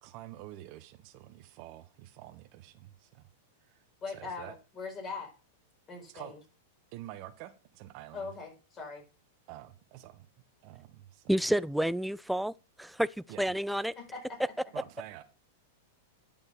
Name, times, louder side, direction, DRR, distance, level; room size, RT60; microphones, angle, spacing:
voice 1, 0.0-3.3 3.6-4.6 6.1-6.3 6.9-8.3 9.5-10.3 10.6-11.3 13.3-13.5 14.7-15.2, right 15 dB, 50° right, 1.1 m, -48 dB
voice 2, 4.0-5.3 5.9-6.4 8.1-9.1 14.0-14.4, left 4 dB, 30° left, 4.8 m, -41 dB
voice 3, 11.3-12.5 12.8-13.1 13.4-13.9, right 1 dB, ahead, 0.3 m, -29 dB
10.5 x 5.4 x 5.5 m
hypercardioid pair, 110°, 0 cm